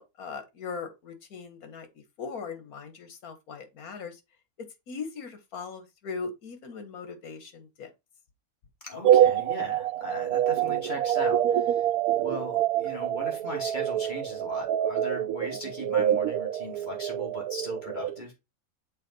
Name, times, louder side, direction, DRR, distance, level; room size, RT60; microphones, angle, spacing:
voice 1, 0.0-1.9 2.2-4.2 4.9-7.9, left 5 dB, 80° left, 1.7 m, -39 dB
voice 2, 8.8-11.8 12.2-18.3, left 2 dB, 30° left, 2.7 m, -38 dB
sound 1, 9.0-18.2, right 11 dB, 85° right, 1.1 m, -26 dB
6.6 x 4.1 x 4.1 m
omnidirectional pair, 1.5 m